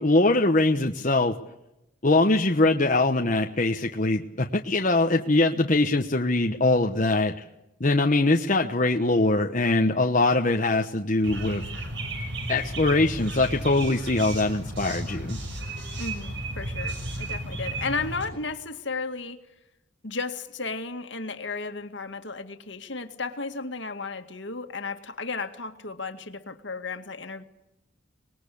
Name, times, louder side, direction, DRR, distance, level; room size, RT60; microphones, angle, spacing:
voice 1, 0.0-1.4 2.0-7.4 7.8-11.6 12.5-15.4, left 2 dB, 40° left, 3 dB, 1.1 m, -22 dB
sound 1, 11.2-18.3, right 1 dB, 60° right, 6.1 m, -33 dB
voice 2, 16.0-19.4 20.0-27.4, left 4 dB, 60° left, 7 dB, 2.1 m, -34 dB
25.5 x 21.0 x 8.6 m, 0.89 s
head